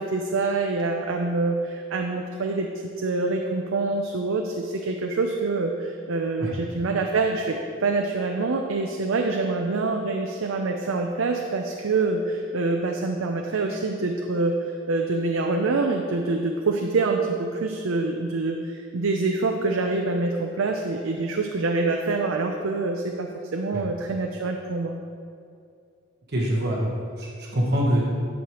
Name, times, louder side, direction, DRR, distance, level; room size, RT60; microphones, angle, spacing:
voice 1, 0.0-2.7 3.0-25.0, right 3 dB, 80° right, 2 dB, 0.5 m, -26 dB
voice 2, 26.3-28.0, equal, 55° right, -3 dB, 1.2 m, -25 dB
11.0 x 6.4 x 3.1 m, 2.4 s
head